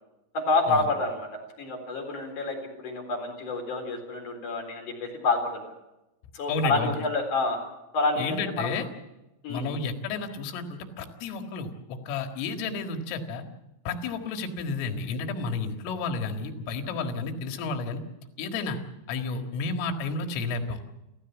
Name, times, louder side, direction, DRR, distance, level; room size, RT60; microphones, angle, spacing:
voice 1, 0.3-1.3 1.6-5.6 6.3-7.6 7.9-8.7 9.4-9.7, left 3 dB, 40° left, 2 dB, 5.0 m, -28 dB
voice 2, 6.5-7.0 8.2-8.9 9.5-13.4 13.9-18.0 18.4-18.8 19.1-20.8, left 4 dB, 80° left, 5 dB, 4.4 m, -31 dB
29.0 x 14.5 x 7.2 m, 0.95 s
omnidirectional pair, 5.7 m